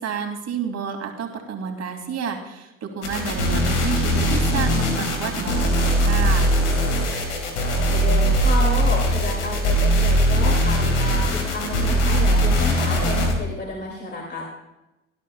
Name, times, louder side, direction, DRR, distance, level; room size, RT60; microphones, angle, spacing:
voice 1, 0.0-6.5, right 6 dB, 45° right, 3 dB, 2.7 m, -30 dB
sound 1, 3.0-13.3, equal, 85° left, 2.2 m, -20 dB
voice 2, 7.9-14.5, left 2 dB, 30° left, -1 dB, 2.6 m, -30 dB
18.0 x 12.0 x 2.4 m, 0.99 s
hypercardioid pair, 60°, 34 cm